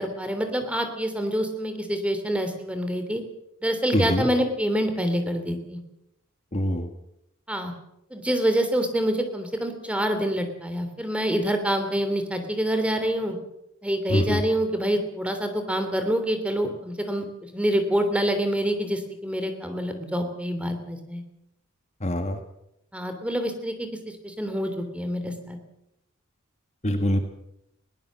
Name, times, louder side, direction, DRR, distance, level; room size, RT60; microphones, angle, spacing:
voice 1, 0.0-3.2 3.6-5.8 7.5-7.7 8.1-13.4 13.8-21.2 22.9-23.9 24.2-25.6, equal, 5° right, 7 dB, 3.1 m, -26 dB
voice 2, 3.9-4.3 6.5-6.9 14.1-14.4 22.0-22.4 26.8-27.2, equal, 35° left, 6 dB, 1.7 m, -23 dB
21.5 x 18.0 x 7.5 m, 0.84 s
head